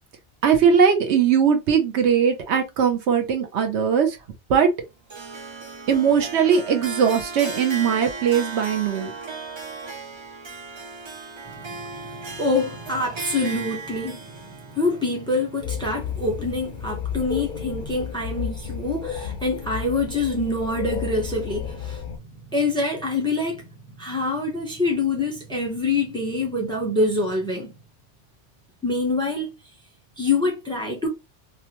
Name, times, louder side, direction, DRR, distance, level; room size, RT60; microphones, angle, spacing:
voice 1, 0.4-4.2 4.5-4.7 5.9-9.1, right 7 dB, 70° right, 0.9 m, -20 dB
Harp, 5.1-16.3, right 3 dB, 50° right, 0.3 m, -36 dB
voice 2, 11.6-22.1 22.5-23.7 24.0-27.7 28.8-29.5 30.2-31.1, left 2 dB, 5° left, 0.7 m, -25 dB
sound 1, 15.6-22.2, left 8 dB, 60° left, 0.5 m, -32 dB
2.7 x 2.1 x 2.9 m
omnidirectional pair, 1.2 m